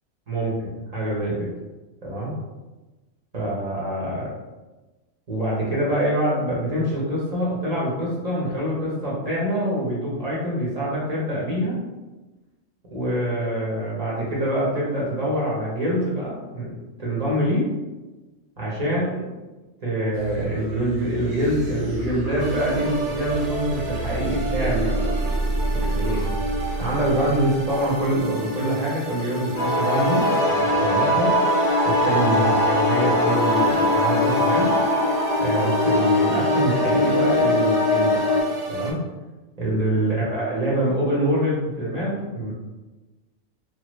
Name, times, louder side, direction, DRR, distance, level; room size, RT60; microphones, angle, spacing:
voice 1, 0.3-1.5 2.0-2.3 3.3-4.3 5.3-11.8 12.9-16.7 17.0-17.7 18.6-19.3 19.8-25.1 25.7-26.2 26.8-31.3 31.8-34.7 35.4-38.2 38.7-39.0 39.6-42.5, right 1 dB, 35° right, -6 dB, 0.8 m, -25 dB
sound 1, 20.1-28.1, right 2 dB, 90° right, 1.1 m, -29 dB
sound 2, 22.4-38.9, right 1 dB, 65° right, 0.9 m, -31 dB
sound 3, 29.5-38.4, left 1 dB, 55° left, 0.7 m, -21 dB
3.0 x 2.2 x 3.0 m, 1.2 s
omnidirectional pair, 1.4 m